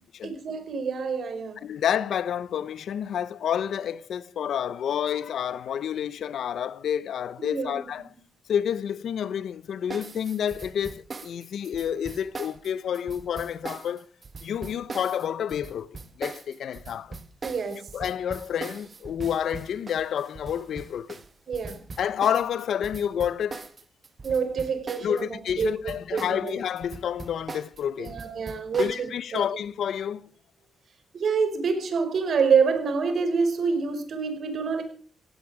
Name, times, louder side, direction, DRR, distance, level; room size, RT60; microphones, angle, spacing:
voice 1, 0.2-1.6 7.4-8.1 17.4-17.9 21.5-21.8 24.2-26.5 28.0-29.4 31.1-34.8, right 5 dB, 60° right, 5.2 m, -27 dB
voice 2, 1.6-8.0 8.5-14.1 14.4-17.2 17.9-21.2 22.0-23.7 25.0-28.2 28.8-30.3, left 9 dB, 75° left, 0.9 m, -29 dB
sound 1, 9.9-25.2 25.5-29.0, right 4 dB, 35° right, 1.9 m, -41 dB
17.5 x 16.5 x 5.0 m
cardioid pair, 105°, 0 cm